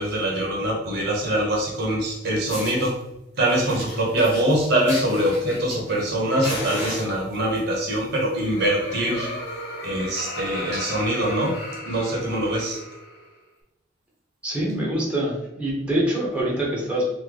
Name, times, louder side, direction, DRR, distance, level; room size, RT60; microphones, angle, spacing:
voice 1, 0.0-3.0 3.4-9.4 9.8-11.6 11.8-12.8, right 1 dB, 60° right, -1 dB, 0.9 m, -23 dB
Fire, 2.0-2.1 2.5-2.9 3.5-6.1 6.4-7.6 8.4-8.7 9.0-9.1 9.5-9.6 9.8-10.1 10.6-10.7 11.6-11.7, left 1 dB, 30° left, 1.1 m, -35 dB
Laughter, 8.3-13.3, left 1 dB, 85° left, 1.0 m, -35 dB
voice 2, 14.4-17.1, right 1 dB, 5° right, -6 dB, 0.8 m, -25 dB
3.1 x 2.1 x 3.7 m, 0.88 s
head